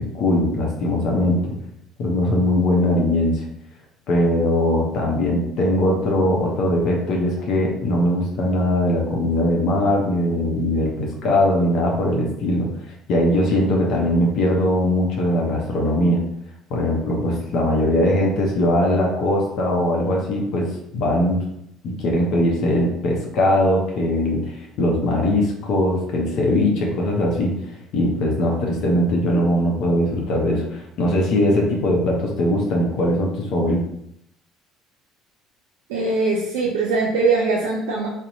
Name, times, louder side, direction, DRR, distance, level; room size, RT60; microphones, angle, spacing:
voice 1, 0.0-1.4 2.0-3.5 4.1-12.7 13.1-16.2 16.7-21.4 21.8-27.6 27.9-33.8, left 1 dB, 65° left, -1 dB, 0.6 m, -20 dB
voice 2, 35.9-38.1, right 3 dB, 80° right, -2 dB, 0.4 m, -21 dB
2.7 x 2.0 x 2.6 m, 0.78 s
hypercardioid pair, 65°, 0 cm